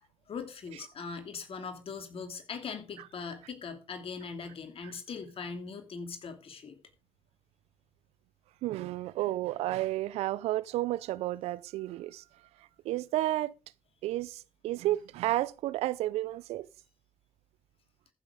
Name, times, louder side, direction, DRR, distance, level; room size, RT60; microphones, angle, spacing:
voice 1, 0.3-6.8, left 5 dB, 65° left, 2.9 m, -40 dB
voice 2, 8.6-12.2 12.8-13.5 14.0-16.7, right 15 dB, 90° right, 0.5 m, -31 dB
14.5 x 7.1 x 4.9 m
supercardioid pair, 50°, 10 cm